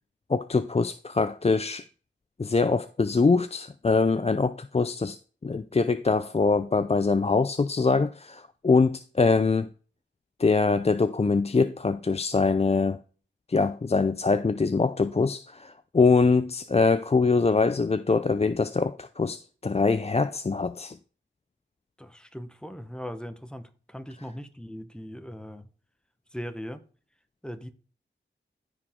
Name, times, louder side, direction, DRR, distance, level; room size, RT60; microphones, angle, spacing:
voice 1, 0.3-1.8 2.4-5.2 5.4-9.7 10.4-13.0 13.5-21.0, left 4 dB, 30° left, 0.4 m, -23 dB
voice 2, 22.0-25.7 26.3-26.8 27.4-27.7, equal, 5° left, 1.0 m, -39 dB
14.5 x 4.9 x 3.6 m
wide cardioid pair, 65°, 20 cm